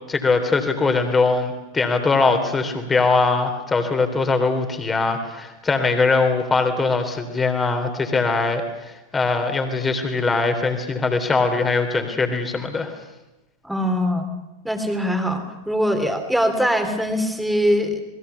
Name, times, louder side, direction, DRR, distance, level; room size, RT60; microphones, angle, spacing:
voice 1, 0.1-13.0, left 3 dB, 15° left, 7 dB, 3.4 m, -21 dB
voice 2, 13.6-14.3 14.6-18.0, equal, ahead, 6 dB, 3.3 m, -22 dB
28.0 x 21.0 x 7.0 m, 1.0 s
figure-of-eight pair, 90°, 0 cm